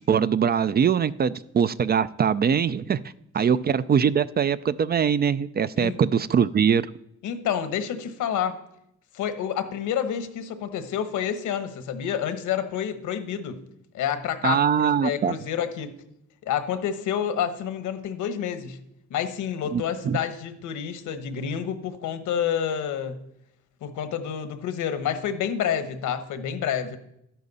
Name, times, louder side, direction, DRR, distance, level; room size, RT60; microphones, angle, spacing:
voice 1, 0.1-3.0 3.3-6.8 14.4-15.3 19.7-20.2, right 7 dB, 35° right, 0.4 m, -22 dB
voice 2, 7.2-8.6 9.1-13.6 13.9-15.9 16.4-18.8 19.1-23.2 23.8-27.0, left 8 dB, 80° left, 1.2 m, -29 dB
12.0 x 10.5 x 4.1 m
cardioid pair, 90°, 30 cm